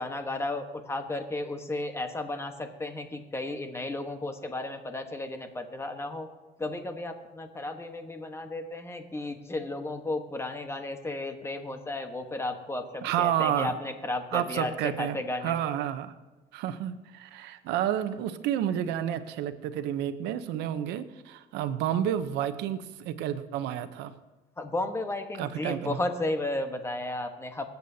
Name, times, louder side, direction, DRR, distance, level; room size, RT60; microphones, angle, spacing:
voice 1, 0.0-6.3 6.6-14.7 15.0-15.6 24.6-27.7, left 2 dB, 15° left, 6 dB, 1.2 m, -34 dB
voice 2, 13.0-13.8 14.3-16.1 16.5-24.1 25.4-26.0, right 10 dB, 90° right, 11 dB, 0.8 m, -30 dB
24.5 x 8.2 x 2.8 m, 1.1 s
cardioid pair, 110°, 17 cm